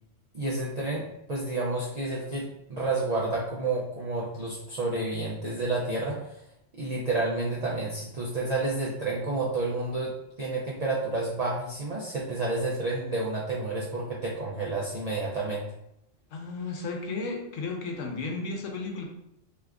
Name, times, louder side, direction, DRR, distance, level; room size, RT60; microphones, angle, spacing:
voice 1, 0.3-6.4 6.8-15.7, right 2 dB, 80° right, -3 dB, 0.3 m, -30 dB
voice 2, 16.3-19.0, left 3 dB, 80° left, 2 dB, 1.0 m, -34 dB
2.8 x 2.4 x 3.3 m, 0.82 s
omnidirectional pair, 1.3 m